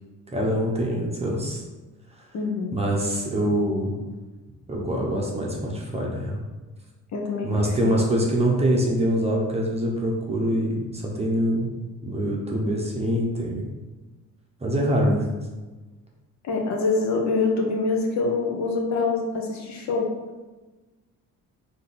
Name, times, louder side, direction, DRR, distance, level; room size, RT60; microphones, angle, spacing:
voice 1, 0.3-1.6 2.7-3.9 4.7-6.4 7.4-11.7 12.0-13.6 14.6-15.3, equal, 20° right, -2 dB, 0.8 m, -24 dB
voice 2, 2.3-2.7 7.1-7.9 16.4-20.1, left 3 dB, 55° left, 0 dB, 0.8 m, -25 dB
3.8 x 2.9 x 4.1 m, 1.2 s
cardioid pair, 120°, 32 cm